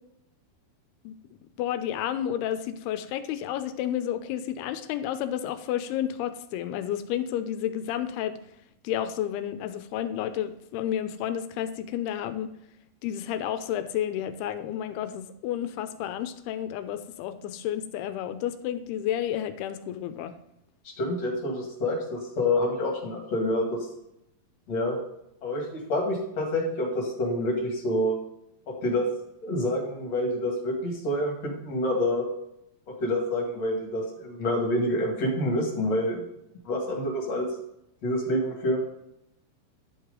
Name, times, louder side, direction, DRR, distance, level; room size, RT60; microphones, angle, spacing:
voice 1, 1.6-8.4 8.8-12.5 13.0-20.3, left 10 dB, 85° left, 10 dB, 2.6 m, -31 dB
voice 2, 21.0-23.8 24.7-25.0 25.4-28.2 28.7-29.1 29.4-32.2 33.0-36.2 36.7-37.5 38.0-38.8, left 1 dB, 50° left, -1 dB, 2.6 m, -27 dB
10.5 x 4.8 x 5.1 m, 0.80 s
omnidirectional pair, 4.6 m